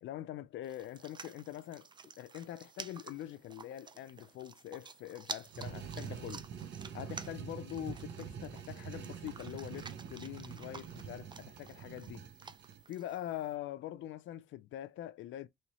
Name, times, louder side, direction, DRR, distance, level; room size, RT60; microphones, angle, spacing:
voice 1, 0.0-1.9 2.2-6.5 6.9-12.3 12.9-15.5, left 13 dB, 75° left, 0.5 m, -44 dB
sound 1, 0.6-13.5, right 5 dB, 25° right, 0.4 m, -51 dB
sound 2, 5.4-12.8, right 7 dB, 60° right, 0.7 m, -46 dB
3.1 x 3.0 x 2.8 m
cardioid pair, 90°, 20 cm